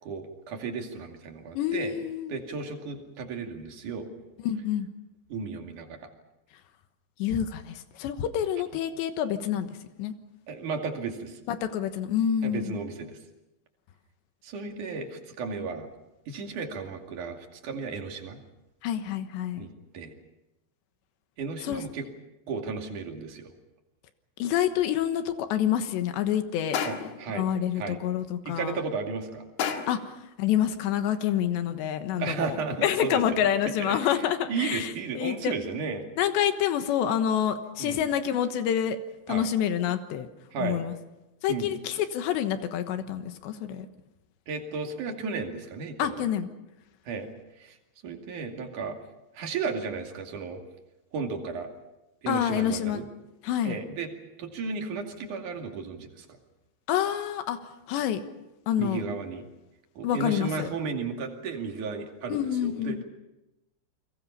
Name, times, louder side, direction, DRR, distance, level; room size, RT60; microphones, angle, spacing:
voice 1, 0.0-2.0 2.3-4.1 5.3-6.1 10.5-11.4 12.4-13.2 14.4-15.9 16.3-18.4 19.6-20.1 21.4-22.1 22.5-23.5 26.8-27.5 27.8-28.0 28.5-29.4 32.2-33.4 33.8-36.1 37.8-38.1 39.3-39.5 40.5-40.8 41.5-41.7 44.5-46.3 47.1-47.3 47.6-47.8 48.0-49.0 49.3-50.6 51.1-51.7 52.2-53.0 53.6-54.1 54.4-56.4 58.8-59.5 60.0-63.0, right 5 dB, 50° right, 3 dB, 3.5 m, -34 dB
voice 2, 1.6-2.5 4.4-4.9 7.2-10.2 11.5-12.8 18.8-19.7 21.6-21.8 24.4-26.8 27.4-28.8 29.9-35.5 36.2-39.0 39.3-40.3 40.6-41.0 41.4-43.9 46.0-46.5 52.3-53.0 53.4-53.8 56.9-57.6 57.9-58.2 58.7-59.0 60.0-60.7 62.3-63.0, left 10 dB, 80° left, 9 dB, 3.4 m, -27 dB
sound 1, 26.7-27.3 29.6-30.2, left 7 dB, 60° left, 3.3 m, -31 dB
30.0 x 22.5 x 5.8 m, 0.97 s
omnidirectional pair, 5.2 m